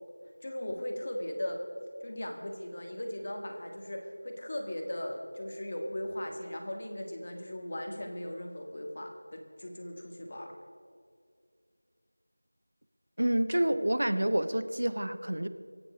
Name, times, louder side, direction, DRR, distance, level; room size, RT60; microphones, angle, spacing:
voice 1, 0.4-1.6 2.0-10.5, left 1 dB, 25° left, 3 dB, 1.5 m, -38 dB
voice 2, 13.2-15.5, right 1 dB, 65° right, 12 dB, 0.9 m, -28 dB
24.0 x 8.5 x 5.0 m, 2.2 s
figure-of-eight pair, 180°, 0 cm